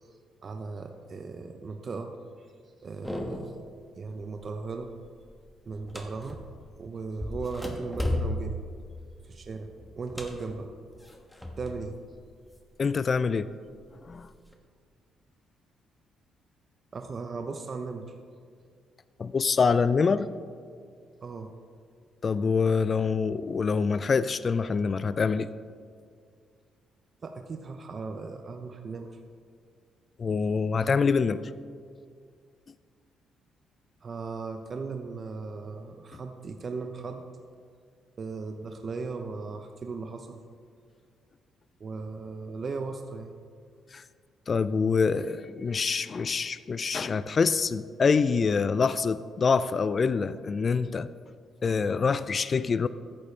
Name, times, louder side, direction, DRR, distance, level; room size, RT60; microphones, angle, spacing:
voice 1, 0.4-2.5 2.8-4.9 5.7-6.4 6.8-8.6 9.2-10.7 11.6-12.0 16.9-18.1 21.2-21.6 27.2-29.2 34.0-37.2 38.2-40.4 41.8-43.3, right 4 dB, 45° right, 6 dB, 0.7 m, -37 dB
sound 1, 3.0-3.7 4.1-4.5 4.8-6.7 7.2-11.9 12.2-13.2 13.7-14.5, left 1 dB, 10° left, 1.3 m, -35 dB
voice 2, 12.8-13.5 14.1-14.3 19.2-20.3 22.2-25.5 30.2-31.4 43.9-44.0 44.5-51.1 51.6-52.9, left 5 dB, 40° left, 14 dB, 0.3 m, -25 dB
13.5 x 9.7 x 3.2 m, 2.1 s
cardioid pair, 90°, 0 cm